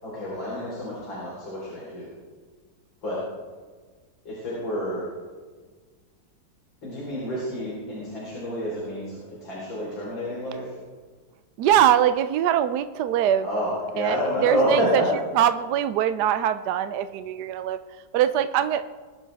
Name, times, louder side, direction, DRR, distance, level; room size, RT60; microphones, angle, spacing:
voice 1, 0.0-2.1 3.0-3.2 4.2-5.1 6.8-10.7 13.4-15.0, equal, 80° left, -6 dB, 4.9 m, -28 dB
voice 2, 11.6-13.5 14.0-14.2 14.4-15.0 15.4-17.8 18.1-18.8, right 10 dB, 70° right, 11 dB, 1.1 m, -22 dB
21.5 x 12.0 x 3.5 m, 1.4 s
omnidirectional pair, 2.0 m